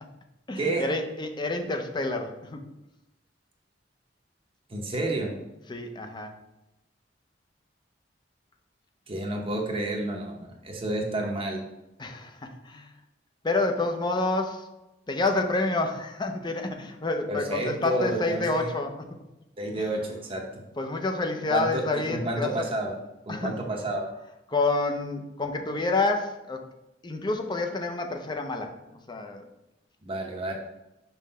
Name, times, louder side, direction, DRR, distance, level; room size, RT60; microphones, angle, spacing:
voice 1, 0.5-2.7 5.7-6.3 12.0-12.9 13.4-14.7 15.1-19.2 19.8-19.9 20.8-22.5 23.3-23.6 24.5-26.7 27.0-28.8 29.1-29.4, left 2 dB, 25° left, 4 dB, 0.6 m, -28 dB
voice 2, 4.7-5.3 9.1-11.6 17.3-18.7 19.6-20.6 21.5-21.8 22.1-23.0 23.3-24.1 30.0-30.5, right 1 dB, 30° right, 1 dB, 0.8 m, -30 dB
5.6 x 3.1 x 5.5 m, 0.92 s
head